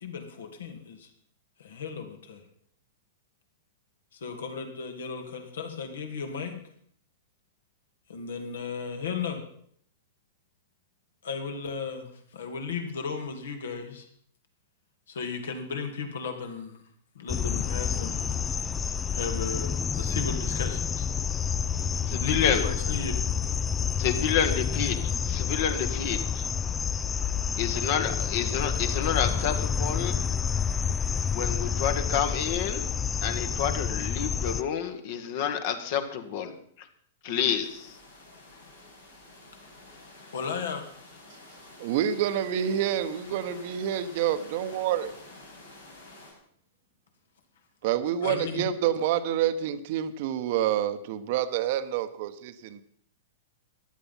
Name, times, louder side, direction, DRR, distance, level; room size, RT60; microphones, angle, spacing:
voice 1, 0.0-1.1 1.6-2.4 4.1-6.6 8.1-9.4 11.2-14.1 15.1-16.8 17.1-18.5 19.1-21.1 22.2-23.2 28.0-28.1 40.3-40.8 48.2-48.7, left 5 dB, 65° left, 5 dB, 2.5 m, -35 dB
sound 1, 17.3-34.6, left 7 dB, 20° left, 0.5 m, -29 dB
voice 2, 22.1-22.7 23.9-25.0 25.2-26.5 27.6-30.2 31.3-32.9 33.2-36.9 37.2-38.0, left 8 dB, 50° left, 8 dB, 1.8 m, -29 dB
sound 2, 37.6-46.3, left 2 dB, 85° left, 6.4 m, -49 dB
voice 3, 41.8-45.1 47.8-52.8, right 10 dB, 50° right, 12 dB, 1.1 m, -28 dB
15.0 x 11.0 x 5.6 m, 0.63 s
figure-of-eight pair, 105°, 0 cm